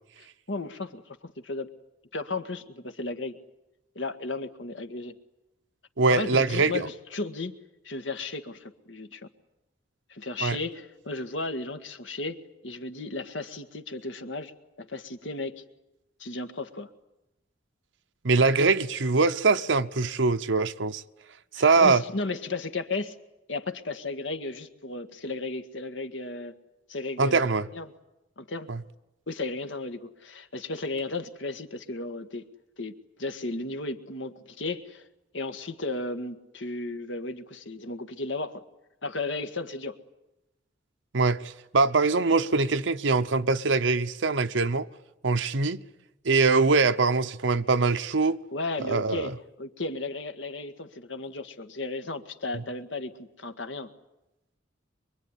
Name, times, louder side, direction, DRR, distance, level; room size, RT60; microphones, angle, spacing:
voice 1, 0.2-1.7 2.1-3.4 4.0-5.2 6.1-7.6 7.8-9.3 10.1-15.6 16.2-16.9 21.6-23.2 23.5-26.5 26.9-27.9 28.4-28.7 29.3-32.5 32.8-35.1 35.3-38.6 39.0-40.0 48.5-53.9, left 3 dB, 80° left, 1.9 m, -34 dB
voice 2, 6.0-6.9 10.4-10.6 18.2-21.0 21.6-22.0 27.2-27.6 28.7-28.8 41.1-44.9 45.2-45.8 46.2-48.4 48.9-49.3, right 4 dB, 90° right, 0.9 m, -23 dB
24.5 x 23.5 x 9.9 m
head